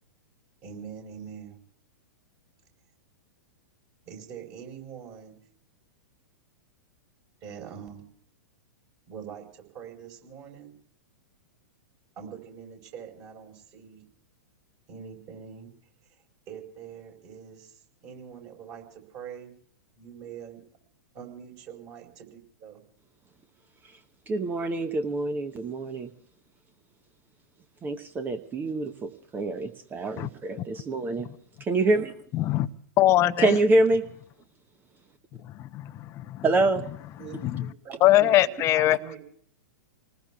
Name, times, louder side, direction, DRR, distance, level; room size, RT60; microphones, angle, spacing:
voice 1, 0.6-1.6 4.0-5.4 7.4-8.1 9.1-10.7 12.2-14.1 14.9-15.7 16.5-19.5 19.9-20.6 21.1-22.8 37.2-39.2, right 8 dB, 35° right, 4.6 m, -43 dB
voice 2, 24.3-26.1 27.8-31.3 31.6-32.1 33.4-34.0 36.4-36.8, right 2 dB, 20° right, 0.9 m, -25 dB
voice 3, 32.3-32.7 33.0-33.6 35.6-36.4 37.4-37.7 38.0-39.0, left 14 dB, 30° left, 0.6 m, -22 dB
29.5 x 19.5 x 2.4 m
figure-of-eight pair, 105°, 10 cm